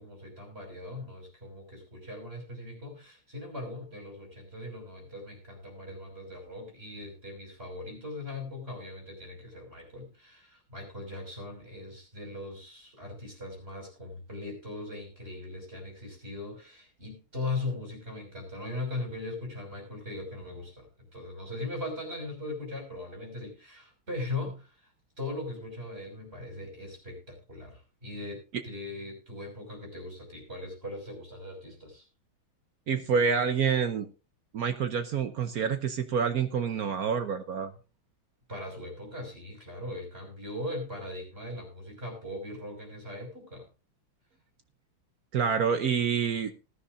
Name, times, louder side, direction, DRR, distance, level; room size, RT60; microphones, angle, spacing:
voice 1, 0.0-24.9 25.2-32.0 38.5-43.7, left 2 dB, 30° right, 1 dB, 6.1 m, -39 dB
voice 2, 32.9-34.1 34.5-37.7 45.3-46.5, right 6 dB, 60° right, 9 dB, 1.0 m, -27 dB
19.5 x 10.5 x 2.6 m, 0.32 s
omnidirectional pair, 2.3 m